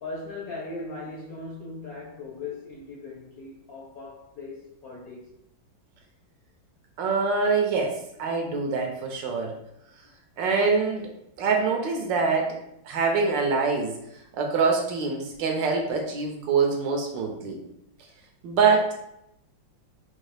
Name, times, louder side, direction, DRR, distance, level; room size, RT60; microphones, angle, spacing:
voice 1, 0.0-5.3, left 3 dB, 70° left, -3 dB, 0.9 m, -39 dB
voice 2, 7.0-9.6 10.4-11.1 11.4-12.6 12.8-13.9 14.4-17.6 18.4-18.9, right 4 dB, 75° right, 2 dB, 1.2 m, -24 dB
3.9 x 2.7 x 3.2 m, 0.80 s
omnidirectional pair, 2.2 m